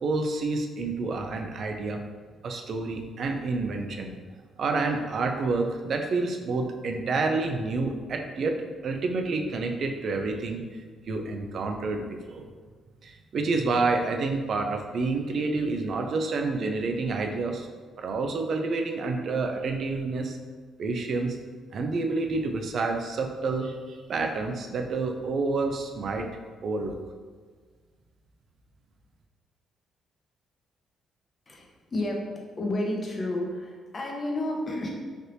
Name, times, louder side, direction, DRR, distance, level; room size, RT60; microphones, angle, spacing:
voice 1, 0.0-2.0 2.4-4.2 4.6-8.6 8.8-10.8 11.1-12.5 13.0-17.7 18.0-20.4 20.8-21.4 21.7-26.3 26.6-27.0, right 3 dB, 55° right, 4 dB, 0.4 m, -28 dB
voice 2, 31.5-32.3 32.6-34.9, left 1 dB, 35° left, -1 dB, 0.7 m, -31 dB
3.2 x 2.7 x 2.6 m, 1.5 s
cardioid pair, 90°, 0 cm